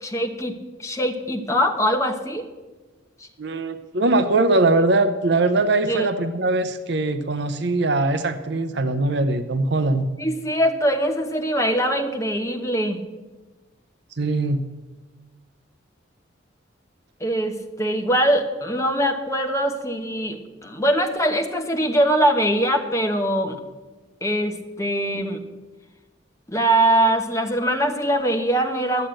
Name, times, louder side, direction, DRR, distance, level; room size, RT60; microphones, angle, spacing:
voice 1, 0.0-2.5 5.9-6.1 10.2-13.0 17.2-23.6 24.2-25.4 26.5-29.1, right 1 dB, 15° left, 3 dB, 1.1 m, -22 dB
voice 2, 3.4-10.1 14.2-14.6, right 2 dB, 60° right, 10 dB, 0.7 m, -21 dB
12.0 x 7.6 x 9.0 m, 1.2 s
head